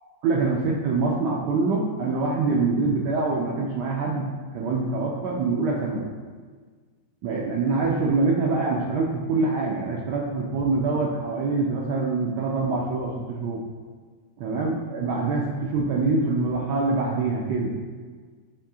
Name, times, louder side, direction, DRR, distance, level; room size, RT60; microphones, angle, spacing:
voice 1, 0.2-4.3 4.5-6.1 7.2-13.6 14.4-17.7, right 3 dB, 75° right, -2 dB, 1.0 m, -25 dB
7.0 x 2.7 x 2.7 m, 1.5 s
omnidirectional pair, 2.3 m